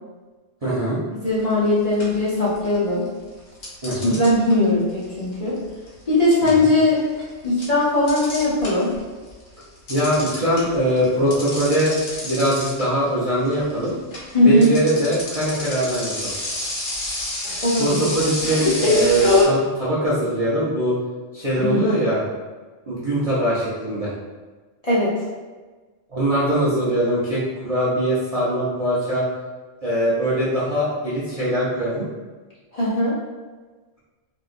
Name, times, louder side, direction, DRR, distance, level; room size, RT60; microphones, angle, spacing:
voice 1, 0.6-1.0 3.8-4.2 6.4-6.7 9.9-11.9 12.2-13.9 14.4-16.3 17.8-20.9 21.3-22.2 22.9-24.1 26.1-29.2 29.8-32.1, right 1 dB, 35° right, -10 dB, 0.6 m, -22 dB
voice 2, 1.1-3.1 4.0-5.6 6.1-7.0 7.4-8.9 14.3-14.7 17.6-18.0 21.6-21.8 24.8-25.1 32.7-33.1, left 1 dB, 35° left, -9 dB, 0.8 m, -19 dB
sound 1, 1.4-1.7 2.0-2.9 3.6-9.0 9.3-19.4, left 2 dB, 85° left, 1.3 m, -26 dB
3.6 x 2.7 x 2.5 m, 1.3 s
omnidirectional pair, 1.3 m